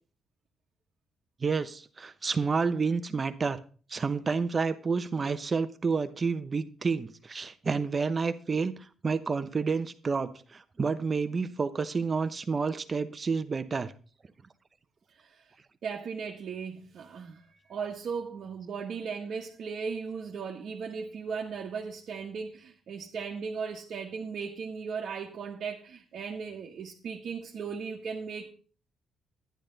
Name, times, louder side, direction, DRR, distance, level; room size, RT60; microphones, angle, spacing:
voice 1, 1.4-3.6 3.9-13.9, right 4 dB, 35° right, 0.9 m, -29 dB
voice 2, 15.8-28.5, right 5 dB, 60° right, 1.3 m, -37 dB
10.5 x 10.0 x 4.0 m
cardioid pair, 90°, 0 cm